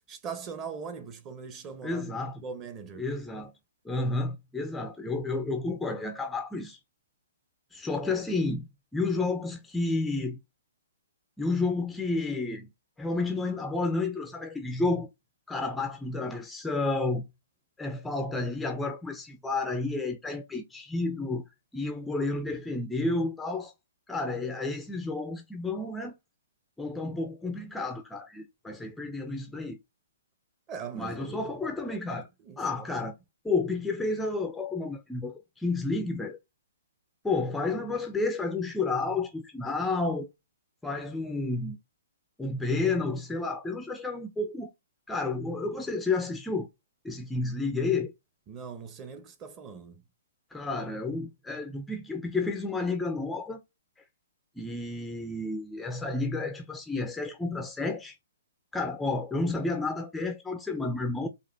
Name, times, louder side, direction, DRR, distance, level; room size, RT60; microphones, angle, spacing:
voice 1, 0.1-2.1 2.4-3.0 30.7-31.4 32.4-32.9 48.5-50.0, right 6 dB, 25° right, 0.9 m, -40 dB
voice 2, 1.8-2.4 3.0-3.5 3.8-6.8 7.7-10.4 11.4-12.7 13.0-15.1 15.5-17.3 17.8-21.4 21.7-23.7 24.1-26.1 26.8-29.8 30.9-32.3 32.6-33.1 33.4-36.4 37.2-40.3 40.8-41.8 42.4-44.7 45.1-46.7 47.0-48.1 50.5-53.6 54.6-58.2 58.7-61.3, left 3 dB, 5° left, 0.5 m, -31 dB
4.7 x 2.5 x 3.3 m
figure-of-eight pair, 130°, 0 cm